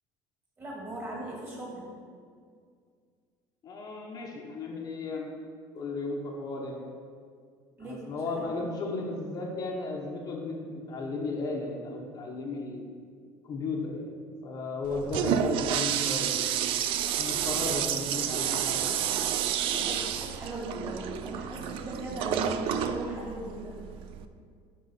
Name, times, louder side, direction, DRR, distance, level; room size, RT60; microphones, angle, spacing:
voice 1, 0.6-1.9 7.8-8.0 8.3-8.5 19.6-23.7, right 1 dB, 25° right, -2 dB, 1.7 m, -38 dB
voice 2, 3.6-5.3 5.7-6.9 7.8-12.9 13.4-14.1 14.4-16.6 17.2-19.1, left 3 dB, 40° left, 0 dB, 0.8 m, -35 dB
Toilet flush, 14.8-24.2, right 9 dB, 60° right, 0.4 m, -30 dB
10.5 x 3.8 x 4.2 m, 2.1 s
cardioid pair, 145°, 10 cm